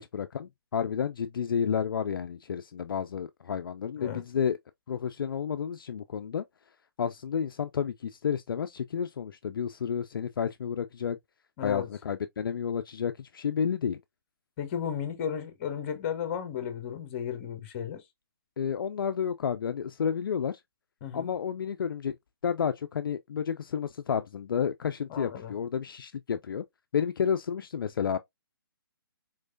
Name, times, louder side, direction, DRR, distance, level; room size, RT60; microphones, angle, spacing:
voice 1, 0.0-4.6 4.9-6.4 7.0-11.2 11.6-14.0 18.6-20.6 21.1-22.1 22.4-26.6 26.9-28.2, left 7 dB, 65° left, 0.4 m, -31 dB
voice 2, 11.6-11.9 14.6-18.0 21.0-21.3 25.1-25.5, left 8 dB, 35° left, 1.0 m, -34 dB
3.8 x 3.2 x 2.5 m
hypercardioid pair, 145°, 12 cm